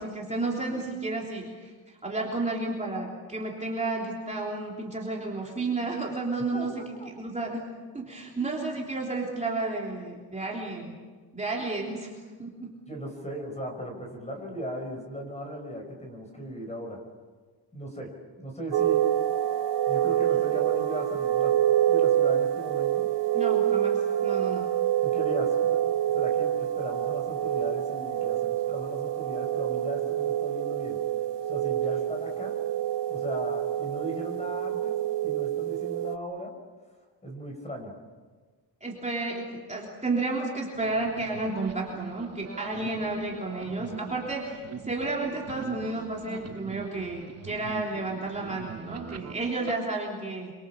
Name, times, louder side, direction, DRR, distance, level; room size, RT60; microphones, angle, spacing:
voice 1, 0.0-7.7 7.9-10.9 11.3-12.7 20.1-20.4 23.3-24.7 38.8-50.5, right 2 dB, 15° right, -3 dB, 3.3 m, -32 dB
voice 2, 12.9-17.0 17.7-18.1 18.4-19.1 19.9-21.5 21.9-23.1 25.0-31.0 31.5-32.5 33.1-34.9 35.2-36.5 37.2-37.9, equal, 15° left, 3 dB, 5.3 m, -37 dB
sound 1, 18.7-36.2, right 11 dB, 75° right, 1.3 m, -27 dB
sound 2, 40.7-49.7, right 7 dB, 35° right, 1.1 m, -42 dB
27.5 x 25.0 x 7.2 m, 1.4 s
wide cardioid pair, 175°, 42 cm